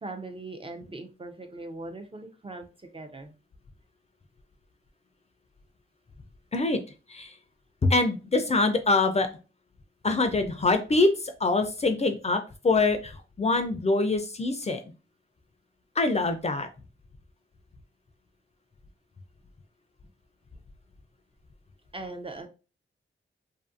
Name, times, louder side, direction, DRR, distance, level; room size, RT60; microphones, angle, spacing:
voice 1, 0.0-3.3 21.9-22.5, right 2 dB, 25° right, 5 dB, 0.5 m, -40 dB
voice 2, 7.8-9.3 10.0-14.8 16.0-16.7, left 3 dB, 30° left, 6 dB, 0.4 m, -24 dB
2.6 x 2.5 x 2.4 m, 0.32 s
cardioid pair, 70°, 21 cm